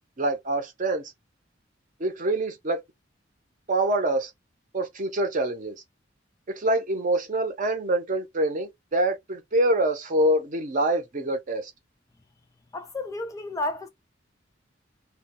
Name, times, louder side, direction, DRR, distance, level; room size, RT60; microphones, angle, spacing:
voice 1, 0.2-1.1 2.0-2.8 3.7-4.3 4.7-5.7 6.5-11.7, right 1 dB, 45° right, 0.7 m, -25 dB
voice 2, 12.7-13.9, left 2 dB, 20° left, 0.3 m, -31 dB
2.2 x 2.2 x 2.9 m
head